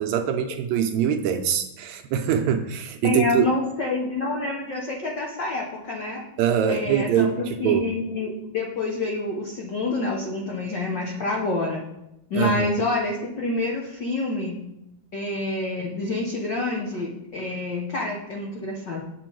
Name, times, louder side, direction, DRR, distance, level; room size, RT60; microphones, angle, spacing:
voice 1, 0.0-3.5 6.4-7.9 12.3-12.7, right 8 dB, 80° right, 5 dB, 1.8 m, -23 dB
voice 2, 3.0-6.2 6.7-11.8 12.3-14.6 15.1-19.0, left 2 dB, 85° left, -2 dB, 0.9 m, -27 dB
8.4 x 7.6 x 4.5 m, 0.87 s
omnidirectional pair, 3.6 m